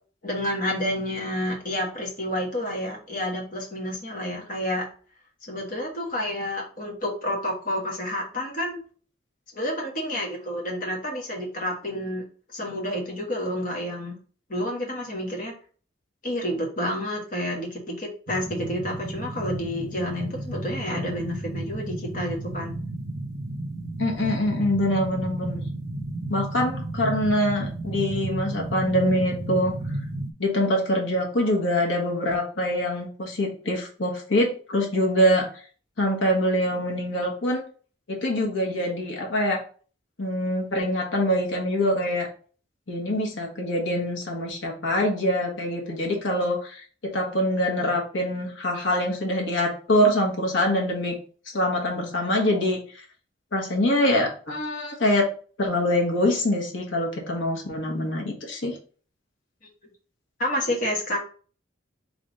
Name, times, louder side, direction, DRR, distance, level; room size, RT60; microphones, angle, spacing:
voice 1, 0.2-4.9 5.4-8.8 9.5-12.3 12.5-14.2 14.5-15.5 16.2-22.8 60.4-61.2, left 1 dB, 45° left, -1 dB, 1.4 m, -29 dB
sound 1, 18.3-30.3, right 2 dB, 50° right, 0.6 m, -33 dB
voice 2, 24.0-25.6 26.3-29.7 30.4-35.6 36.0-37.6 38.1-39.6 40.2-42.3 42.9-51.1 51.5-53.0 53.5-55.3 55.6-58.8, left 1 dB, 70° left, -1 dB, 1.3 m, -24 dB
3.5 x 3.5 x 3.9 m, 0.41 s
head